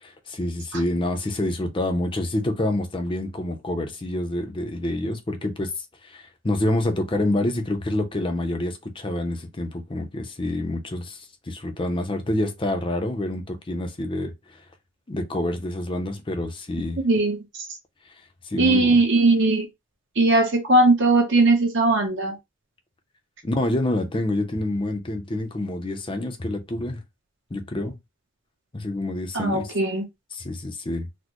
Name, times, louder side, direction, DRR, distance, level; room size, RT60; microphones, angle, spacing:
voice 1, 0.0-5.7 6.0-14.6 15.1-17.0 18.4-19.0 23.4-27.0 27.5-28.0 28.7-29.7 30.3-31.1, left 1 dB, 25° left, 0.5 m, -27 dB
voice 2, 17.0-17.4 18.6-19.7 20.2-22.4 29.3-30.0, right 2 dB, 60° right, 1.0 m, -19 dB
4.1 x 2.1 x 3.0 m
head